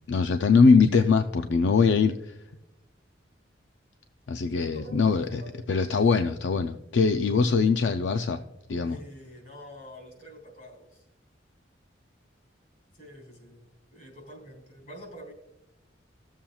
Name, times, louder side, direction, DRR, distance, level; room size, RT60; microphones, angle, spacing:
voice 1, 0.1-2.3 4.3-5.4 5.7-8.4 8.7-9.0, left 4 dB, 80° left, 7 dB, 0.4 m, -22 dB
voice 2, 4.5-5.5 8.8-11.0 12.9-15.3, equal, 45° left, 2 dB, 3.8 m, -47 dB
16.0 x 7.3 x 2.3 m, 0.89 s
head